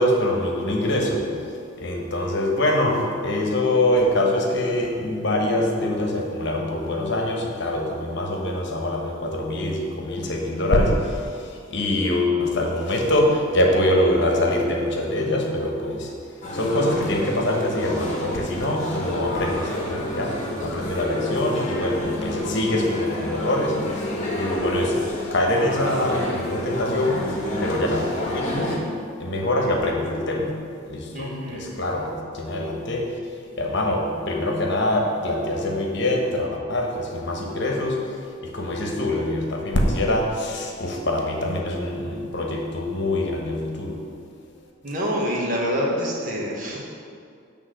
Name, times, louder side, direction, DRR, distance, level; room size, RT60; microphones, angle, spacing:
voice 1, 0.0-28.8 29.2-44.1, left 1 dB, 55° left, 0 dB, 1.1 m, -24 dB
sound 1, 16.4-28.8, left 1 dB, 35° left, 1.2 m, -29 dB
voice 2, 31.1-31.6 44.8-46.8, equal, 40° right, -3 dB, 1.3 m, -26 dB
8.1 x 3.6 x 6.4 m, 2.3 s
head